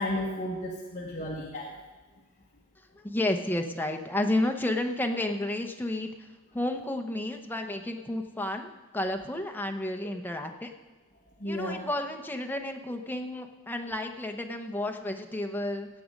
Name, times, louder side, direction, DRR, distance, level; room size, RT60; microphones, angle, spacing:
voice 1, 0.0-1.7 11.4-11.8, left 1 dB, 35° left, -3 dB, 1.4 m, -33 dB
voice 2, 3.0-6.1 6.5-10.7 11.4-15.9, left 1 dB, 10° left, 4 dB, 0.9 m, -31 dB
17.0 x 7.7 x 5.3 m, 1.2 s
head